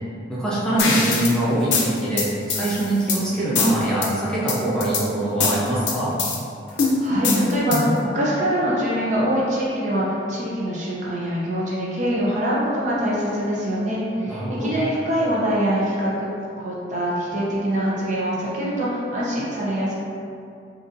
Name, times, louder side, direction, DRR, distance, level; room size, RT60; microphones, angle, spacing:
voice 1, 0.3-6.1 14.3-14.7, right 1 dB, 5° left, -10 dB, 0.6 m, -23 dB
sound 1, 0.8-1.3 1.7-3.2 3.6-4.1 4.5-5.0 5.4-6.4 6.8-8.0, left 3 dB, 85° left, 0.5 m, -23 dB
voice 2, 6.7-16.3 16.6-19.9, equal, 40° right, -7 dB, 0.6 m, -24 dB
3.7 x 2.6 x 2.5 m, 2.4 s
head